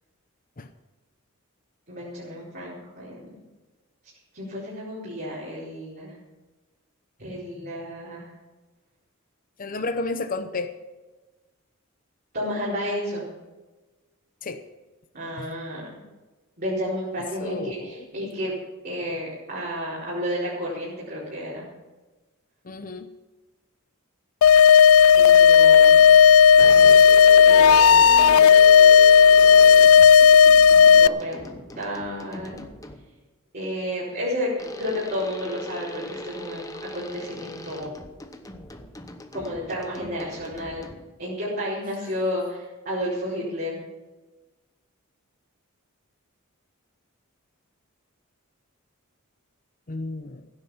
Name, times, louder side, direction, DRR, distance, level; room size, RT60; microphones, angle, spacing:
voice 1, 1.9-3.2 4.3-6.1 7.2-8.3 12.3-13.3 15.1-15.9 16.6-18.5 18.8-21.6 25.1-26.0 26.6-26.9 27.4-28.5 30.7-32.6 33.5-36.6 36.9-37.9 39.3-40.9 41.2-43.8, equal, 45° right, -8 dB, 4.5 m, -31 dB
voice 2, 9.6-10.7 14.4-14.6 15.4-15.5 17.4-18.1 22.6-23.1 27.6-28.5 49.9-50.5, left 3 dB, 40° left, 8 dB, 0.8 m, -33 dB
sound 1, 24.4-31.1, left 7 dB, 70° left, 0.4 m, -12 dB
sound 2, 26.6-33.2 34.6-41.2, left 1 dB, 15° left, 1.0 m, -41 dB
16.0 x 9.8 x 5.8 m, 1.2 s
head